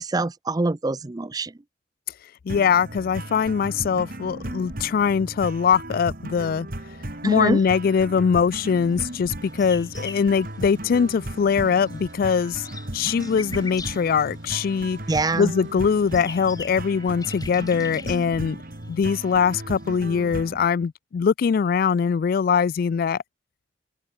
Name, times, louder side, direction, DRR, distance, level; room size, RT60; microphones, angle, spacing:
voice 1, 0.0-1.5 7.2-7.6 15.1-15.5, right 2 dB, 20° right, 0.5 m, -24 dB
voice 2, 2.5-6.7 7.2-12.7 12.9-15.0 15.4-18.6 18.9-23.2, left 6 dB, 50° left, 0.3 m, -22 dB
sound 1, 2.5-20.7, right 1 dB, 50° right, 3.0 m, -36 dB
sound 2, 9.1-11.3 11.6-15.2 15.7-20.0, left 4 dB, 20° left, 4.3 m, -42 dB
sound 3, 9.4-17.1, right 2 dB, 80° right, 2.6 m, -52 dB
open air
head